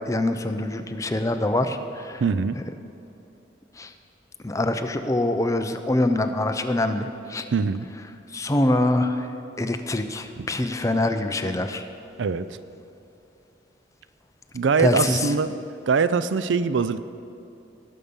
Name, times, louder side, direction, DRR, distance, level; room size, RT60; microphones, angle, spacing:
voice 1, 0.0-2.2 3.8-3.9 4.4-7.4 8.3-9.3 9.6-11.8 14.8-15.3, left 1 dB, 15° left, 7 dB, 0.5 m, -24 dB
voice 2, 2.2-2.6 7.5-7.9 10.4-10.5 12.2-12.5 14.5-15.5 15.9-17.0, right 5 dB, 90° right, 14 dB, 0.5 m, -22 dB
18.5 x 6.7 x 5.4 m, 2.8 s
head